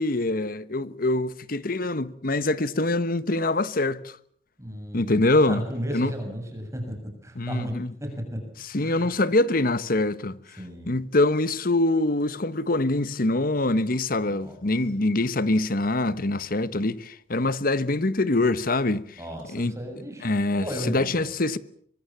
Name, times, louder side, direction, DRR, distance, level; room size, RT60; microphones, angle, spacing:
voice 1, 0.0-4.1 4.9-5.6 5.9-6.1 7.4-7.9 8.7-10.4 10.9-19.1 19.5-19.7 20.2-21.6, left 2 dB, 55° left, 1.2 m, -24 dB
voice 2, 4.6-5.2 5.5-7.0 7.2-7.7 8.0-8.4 8.7-9.1 10.6-11.0 14.3-14.6 19.2-21.2, equal, 15° right, 6.8 m, -34 dB
24.5 x 23.0 x 7.3 m
head